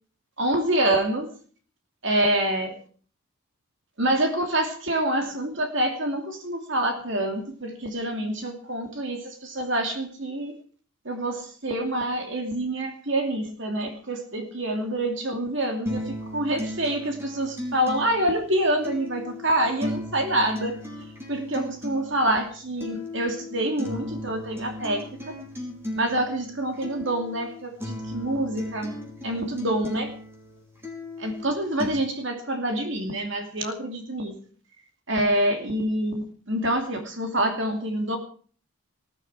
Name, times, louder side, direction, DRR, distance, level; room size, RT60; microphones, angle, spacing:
voice 1, 0.4-1.3 2.0-2.8 4.0-10.5 11.0-20.8 21.3-25.4 26.0-29.0 29.2-30.1 31.2-34.3 35.1-38.2, right 1 dB, 55° right, 4 dB, 2.8 m, -26 dB
sound 1, 15.9-31.9, left 1 dB, 10° right, 4.3 m, -37 dB
20.0 x 12.0 x 4.8 m, 0.43 s
head